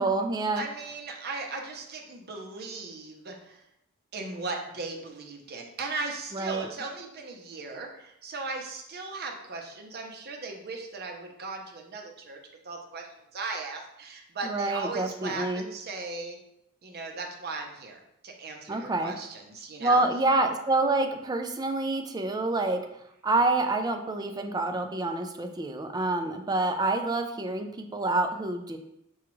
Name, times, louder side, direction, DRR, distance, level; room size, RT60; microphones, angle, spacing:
voice 1, 0.0-0.6 6.3-6.7 14.4-15.6 18.7-19.1 19.8-22.8 23.2-28.8, right 2 dB, 20° right, 5 dB, 0.3 m, -27 dB
voice 2, 0.6-3.6 4.1-12.4 12.6-13.1 13.3-16.4 16.8-20.0, right 3 dB, 50° right, 2 dB, 0.7 m, -37 dB
5.9 x 2.3 x 3.0 m, 0.80 s
head